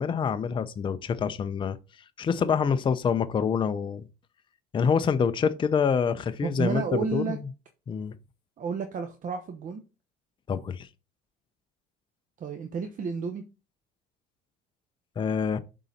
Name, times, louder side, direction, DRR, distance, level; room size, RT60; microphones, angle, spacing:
voice 1, 0.0-1.8 2.2-4.1 4.7-7.5 7.9-8.1 10.5-10.9 15.2-15.6, left 6 dB, 25° left, 0.5 m, -26 dB
voice 2, 6.4-7.4 8.6-9.8 12.4-13.4, right 5 dB, 40° right, 1.0 m, -31 dB
7.5 x 4.0 x 4.1 m
supercardioid pair, 110°, 21 cm